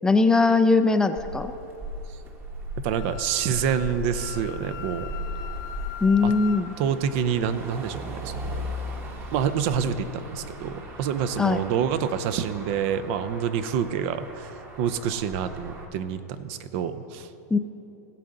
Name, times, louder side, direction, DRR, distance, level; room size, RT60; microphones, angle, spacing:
voice 1, 0.0-1.5 6.0-6.7 11.4-11.6 17.5-17.6, left 3 dB, 5° left, 9 dB, 0.4 m, -20 dB
Motor vehicle (road), 1.2-15.8, equal, 20° right, 1.2 m, -38 dB
voice 2, 2.8-5.2 6.2-6.3 6.8-8.7 9.3-14.5 14.8-17.3, right 8 dB, 50° right, 12 dB, 0.6 m, -27 dB
Wind instrument woodwind instrument, 2.9-6.6, left 10 dB, 45° left, 0.6 m, -40 dB
16.0 x 7.5 x 3.9 m, 2.9 s
hypercardioid pair, 125°, 9 cm